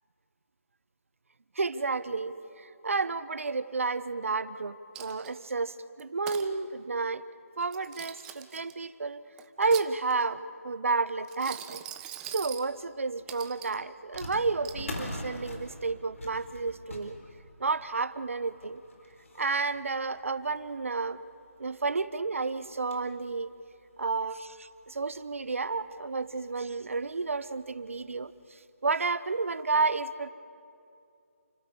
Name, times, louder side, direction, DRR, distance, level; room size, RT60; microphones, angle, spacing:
voice 1, 1.5-7.2 7.6-9.2 9.6-11.8 12.3-17.2 17.6-18.8 19.3-21.2 21.6-23.5 24.0-30.3, right 4 dB, 65° right, 15 dB, 1.0 m, -31 dB
Coin (dropping), 4.9-5.5 6.0-6.5 7.6-8.7 9.4-10.3 11.2-12.7 13.3-13.8 14.2-14.8, right 12 dB, 10° right, 0.5 m, -43 dB
sound 1, 12.7-12.8 14.1-21.1 21.6-21.7 22.0-22.1 22.5-23.2 23.7-23.8 24.7-24.8 25.1-25.3 26.6-26.9 27.3-27.4 28.0-28.2, left 1 dB, 65° left, 4.1 m, -43 dB
29.0 x 12.5 x 8.6 m, 2.6 s
figure-of-eight pair, 160°, 8 cm